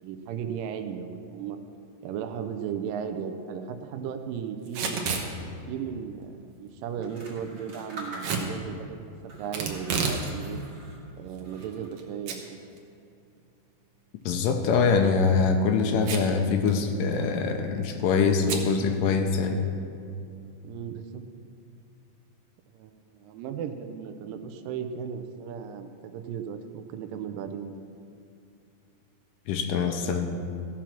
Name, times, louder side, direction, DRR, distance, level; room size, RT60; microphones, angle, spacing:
voice 1, 0.0-1.6 2.0-5.0 5.7-9.0 9.4-10.6 11.2-12.4 20.6-21.3 22.7-27.8, right 7 dB, 80° right, 8 dB, 2.2 m, -36 dB
Packing tape duct tape / Tearing, 4.7-5.3 8.2-8.5 9.5-10.2 10.6-10.7 11.4-12.0 12.3-12.4 12.8-12.9 14.8-15.1 16.0-16.4 16.7-16.8 17.0-17.4 18.5-18.7, right 5 dB, 65° right, 1.8 m, -30 dB
sound 1, 6.9-8.7 9.2-11.0 11.4-12.1, right 2 dB, 40° right, 1.7 m, -44 dB
voice 2, 14.3-19.6 29.5-30.3, left 5 dB, 80° left, 5 dB, 2.2 m, -24 dB
15.0 x 6.1 x 5.8 m, 2.5 s
omnidirectional pair, 4.0 m